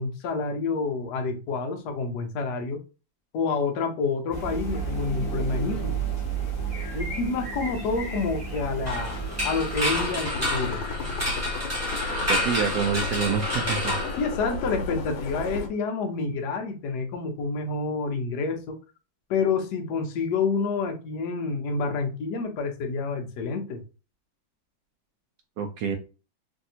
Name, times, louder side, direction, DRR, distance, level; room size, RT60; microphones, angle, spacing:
voice 1, 0.0-2.8 3.3-6.0 6.9-10.8 14.2-18.8 19.3-23.8, left 4 dB, 70° left, 1.1 m, -28 dB
sound 1, 4.3-10.0, right 5 dB, 20° left, 1.4 m, -32 dB
sound 2, 8.9-14.8, left 1 dB, 15° right, 0.5 m, -29 dB
sound 3, 9.7-15.7, left 3 dB, 85° left, 1.4 m, -34 dB
voice 2, 12.3-14.0 25.6-26.0, right 6 dB, 75° right, 0.9 m, -27 dB
3.2 x 2.7 x 2.7 m
omnidirectional pair, 2.1 m